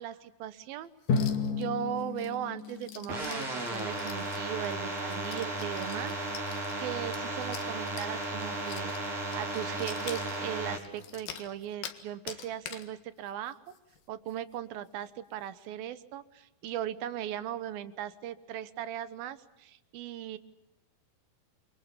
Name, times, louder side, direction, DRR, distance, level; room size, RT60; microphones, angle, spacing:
voice 1, 0.0-13.6 14.1-20.4, right 11 dB, 75° right, 14 dB, 2.9 m, -38 dB
sound 1, 1.0-1.6 2.0-12.0 12.3-12.9 13.3-13.4 13.7-14.0 14.3-14.4 14.9-15.0, left 8 dB, 75° left, 3.5 m, -46 dB
Drum, 1.1-3.8, left 5 dB, 55° left, 2.9 m, -32 dB
sound 2, 3.1-10.8, right 2 dB, 45° right, 5.4 m, -35 dB
28.0 x 24.5 x 7.1 m, 0.96 s
omnidirectional pair, 4.3 m